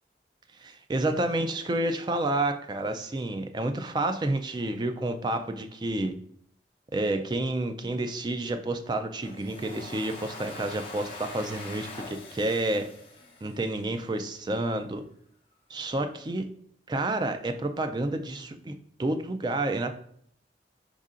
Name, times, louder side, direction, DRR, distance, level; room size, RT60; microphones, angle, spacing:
voice 1, 0.6-6.1 6.9-12.9 13.4-15.0 15.7-16.5 16.9-19.9, right 2 dB, 25° right, 7 dB, 0.3 m, -29 dB
Domestic sounds home sounds, 9.2-14.2, left 2 dB, 35° left, 0.7 m, -43 dB
5.5 x 3.6 x 2.5 m, 0.66 s
head